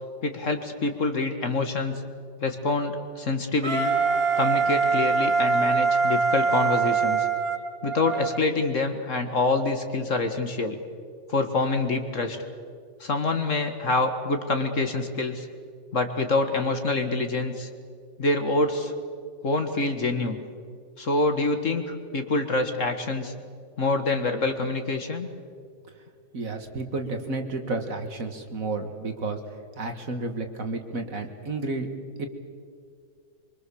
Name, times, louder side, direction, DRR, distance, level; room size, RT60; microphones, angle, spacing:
voice 1, 0.2-1.9 2.4-3.9 4.4-7.3 7.8-10.8 11.3-12.4 13.0-15.5 15.9-17.7 18.2-18.9 19.4-20.4 21.0-23.3 23.8-25.3, left 3 dB, 45° left, 6 dB, 1.8 m, -26 dB
Wind instrument woodwind instrument, 3.6-8.4, right 5 dB, 35° right, 1.9 m, -23 dB
voice 2, 26.3-29.4 29.8-31.9 32.2-32.3, right 3 dB, 50° right, 6 dB, 2.0 m, -31 dB
24.5 x 24.0 x 7.0 m, 2.2 s
omnidirectional pair, 1.9 m